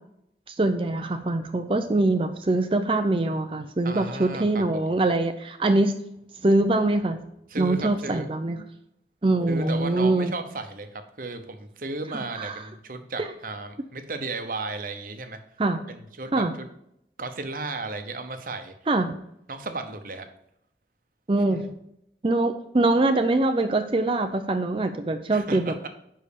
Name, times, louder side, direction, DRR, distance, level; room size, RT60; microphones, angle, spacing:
voice 1, 0.5-5.9 6.4-7.2 7.6-8.6 9.2-10.3 12.1-12.6 13.2-13.3 15.6-15.8 16.3-16.5 18.9-19.1 21.3-21.6 22.2-25.7, right 2 dB, 30° right, 7 dB, 0.5 m, -23 dB
voice 2, 3.8-4.6 7.5-8.3 9.5-15.4 15.9-16.7 17.2-18.7 19.5-20.3 25.3-25.9, right 3 dB, 50° right, 7 dB, 0.9 m, -34 dB
5.6 x 5.2 x 6.7 m, 0.76 s
head